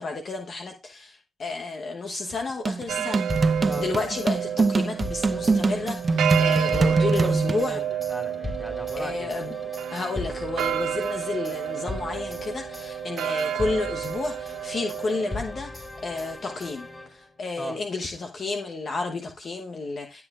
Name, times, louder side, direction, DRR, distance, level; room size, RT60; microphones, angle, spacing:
voice 1, 0.0-3.2 3.6-7.8 8.9-9.6 9.9-20.2, left 3 dB, 50° left, 1.0 m, -31 dB
sound 1, 2.6-7.6, right 3 dB, 35° right, 0.8 m, -23 dB
sound 2, 2.9-15.4, right 10 dB, 75° right, 0.8 m, -30 dB
sound 3, 3.3-17.4, left 2 dB, 30° left, 4.5 m, -39 dB
voice 2, 6.7-9.3 17.6-17.8, equal, 5° left, 2.5 m, -35 dB
15.5 x 7.0 x 2.4 m
supercardioid pair, 65°, 0 cm